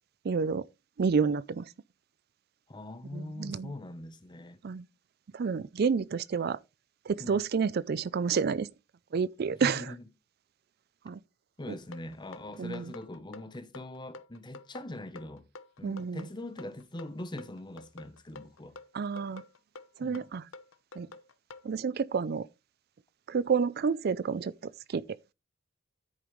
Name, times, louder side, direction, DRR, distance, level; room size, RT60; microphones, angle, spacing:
voice 1, 0.2-0.7 1.0-1.7 3.1-3.7 4.6-4.8 5.3-6.6 7.1-8.7 9.1-9.9 11.0-11.2 11.7-11.8 12.6-12.9 15.8-16.3 18.9-19.4 20.0-20.5 21.0-21.1 21.6-22.5 23.3-25.3, right 5 dB, 55° right, 0.4 m, -30 dB
voice 2, 2.7-4.6 7.2-7.4 9.6-10.0 11.6-15.5 15.8-18.8 20.0-20.3, left 1 dB, 25° left, 0.8 m, -42 dB
sound 1, 11.9-21.7, left 3 dB, 85° left, 0.9 m, -48 dB
10.5 x 8.6 x 3.1 m
head